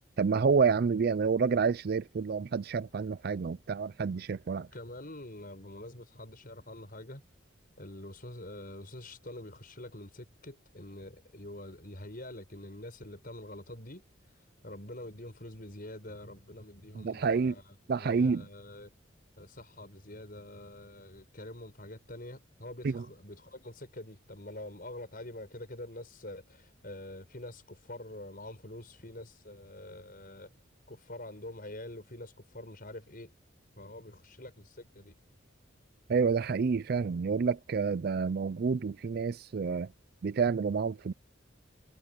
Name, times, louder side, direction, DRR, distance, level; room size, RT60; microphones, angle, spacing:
voice 1, 0.2-4.7 17.0-17.5 17.9-18.4 22.8-23.0 36.1-39.9 40.2-41.1, right 5 dB, 50° right, 0.4 m, -28 dB
voice 2, 4.7-7.2 7.8-14.0 14.6-18.9 19.4-30.5 30.9-33.3 33.8-35.1, left 1 dB, 45° left, 6.6 m, -46 dB
head